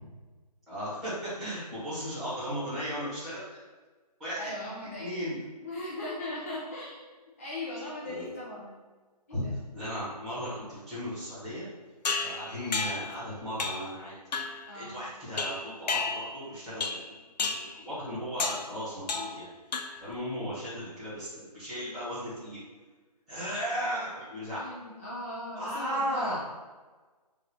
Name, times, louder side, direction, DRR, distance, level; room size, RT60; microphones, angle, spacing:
voice 1, 0.7-3.6 4.2-4.5 5.0-5.4 8.0-8.3 9.3-9.4 9.7-11.6 12.2-14.1 14.7-17.1 17.4-19.5 20.0-22.6 23.3-24.8 25.5-26.4, equal, ahead, -12 dB, 1.2 m, -36 dB
voice 2, 4.3-5.3 5.6-8.8 9.3-9.5 14.6-15.0 24.5-26.4, left 1 dB, 20° left, -6 dB, 0.4 m, -39 dB
sound 1, 12.0-13.2 13.6-13.9 14.3-14.7 15.4-16.4 16.8-17.1 17.4-17.8 18.4-18.7 19.1-19.4 19.7-20.1, left 4 dB, 80° left, 0.5 m, -32 dB
4.0 x 2.5 x 4.2 m, 1.3 s
hypercardioid pair, 165°, 21 cm